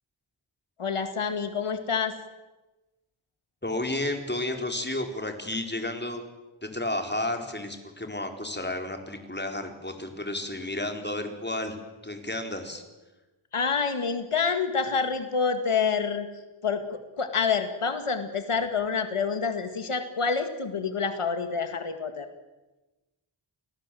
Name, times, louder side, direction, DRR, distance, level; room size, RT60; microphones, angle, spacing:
voice 1, 0.8-2.1 13.5-16.3 16.6-22.3, left 5 dB, 90° left, 8 dB, 2.1 m, -27 dB
voice 2, 3.6-6.2 6.6-11.8 12.0-12.8, left 1 dB, 20° left, 5 dB, 4.3 m, -32 dB
29.0 x 19.0 x 7.7 m, 1.1 s
wide cardioid pair, 50°, 49 cm